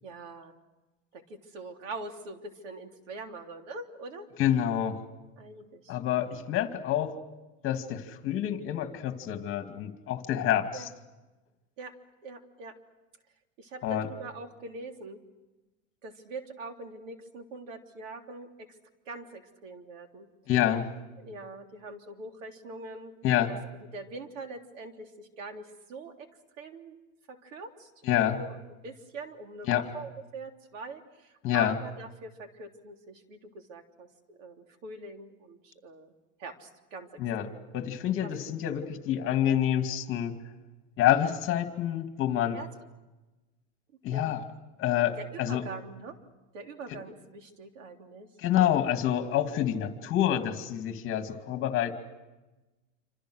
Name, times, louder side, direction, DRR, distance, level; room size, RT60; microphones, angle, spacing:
voice 1, 0.0-0.6 1.1-4.3 5.4-6.0 6.6-6.7 10.7-10.9 11.8-12.0 12.2-12.8 13.6-15.2 16.0-18.7 19.0-20.3 21.2-23.1 23.5-23.6 23.9-26.3 26.6-27.0 27.3-27.9 28.2-28.6 28.8-36.1 36.4-37.6 38.2-38.3 39.2-39.3 42.5-42.7 44.1-44.3 45.2-46.2 46.5-48.3 49.6-49.9, right 3 dB, 75° right, 4 dB, 3.4 m, -43 dB
voice 2, 4.4-5.0 5.9-7.1 7.6-10.9 13.8-14.1 20.5-20.9 23.2-23.5 28.0-28.4 29.7-29.8 31.4-31.8 37.2-37.5 37.7-40.4 41.0-42.6 44.0-44.4 44.8-45.7 46.9-47.0 48.4-51.9, left 11 dB, 35° left, 7 dB, 2.4 m, -27 dB
27.5 x 26.5 x 6.4 m, 1.1 s
supercardioid pair, 145°, 38 cm